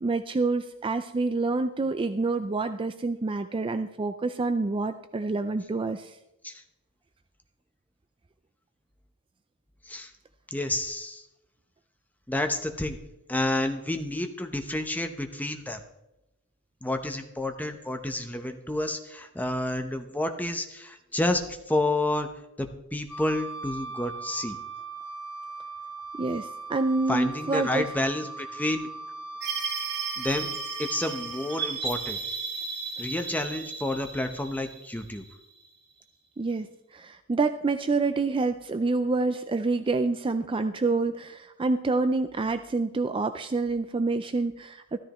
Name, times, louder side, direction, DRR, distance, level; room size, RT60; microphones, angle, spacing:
voice 1, 0.0-6.2 26.2-27.9 36.4-36.7 36.9-45.0, right 3 dB, 25° right, 10 dB, 0.4 m, -27 dB
voice 2, 10.5-11.2 12.3-13.0 13.3-15.8 16.8-22.3 22.6-24.6 27.1-28.9 30.2-32.2 33.0-35.2, left 1 dB, 5° left, 6 dB, 0.8 m, -30 dB
Wind instrument woodwind instrument, 23.1-31.7, right 3 dB, 60° left, 2.9 m, -40 dB
sound 1, 29.4-35.7, right 5 dB, 50° right, 2.1 m, -34 dB
14.0 x 13.0 x 3.0 m, 0.93 s
head